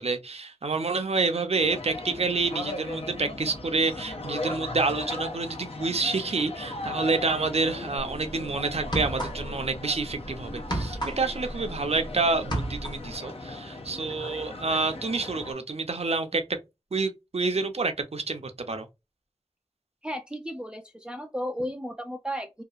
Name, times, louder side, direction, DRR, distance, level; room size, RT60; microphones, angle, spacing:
voice 1, 0.0-16.6 16.9-18.9, right 3 dB, 60° right, 0.5 m, -28 dB
sound 1, 1.6-15.5, left 2 dB, 60° left, 0.6 m, -38 dB
sound 2, 8.0-8.2 8.8-9.7 10.0-12.1 12.3-13.1, right 1 dB, 40° left, 0.9 m, -31 dB
voice 2, 20.0-22.6, equal, 10° right, 0.3 m, -34 dB
2.8 x 2.3 x 2.4 m
wide cardioid pair, 50°, 12 cm